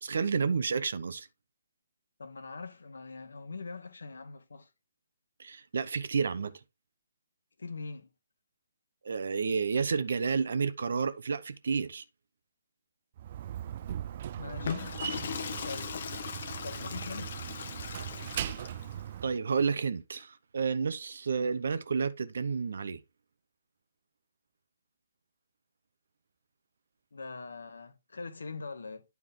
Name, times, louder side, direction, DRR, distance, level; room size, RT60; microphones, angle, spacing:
voice 1, 0.0-1.3 5.4-6.6 9.0-12.0 19.2-23.0, right 5 dB, 65° right, 0.8 m, -30 dB
voice 2, 2.2-4.7 7.6-8.1 14.4-14.8 15.6-16.0 16.6-17.4 27.1-29.0, left 4 dB, 75° left, 1.2 m, -42 dB
Slam, 13.2-19.4, right 11 dB, 45° right, 0.3 m, -39 dB
Water / Toilet flush, 14.5-19.0, left 7 dB, 55° left, 0.9 m, -39 dB
9.4 x 4.7 x 3.7 m
figure-of-eight pair, 140°, 0 cm